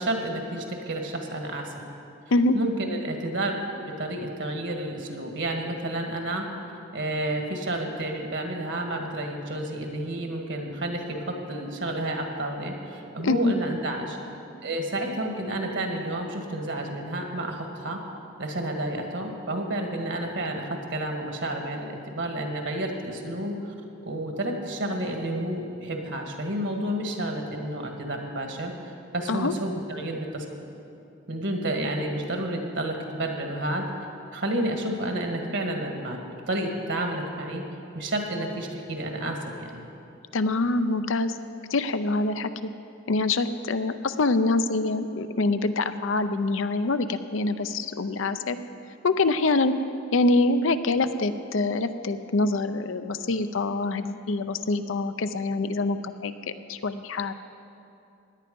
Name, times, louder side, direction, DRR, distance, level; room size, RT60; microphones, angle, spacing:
voice 1, 0.0-1.8 2.5-6.5 6.9-14.2 14.6-18.0 18.4-23.5 24.0-30.4 31.3-33.9 34.3-37.6 37.9-39.8, right 1 dB, 60° right, 3 dB, 1.8 m, -30 dB
voice 2, 13.2-13.5 29.3-29.5 40.3-41.4 41.7-42.7 43.1-48.6 49.0-49.7 50.1-56.3 56.7-57.3, left 2 dB, 70° left, 10 dB, 0.6 m, -25 dB
17.0 x 10.5 x 5.3 m, 2.7 s
head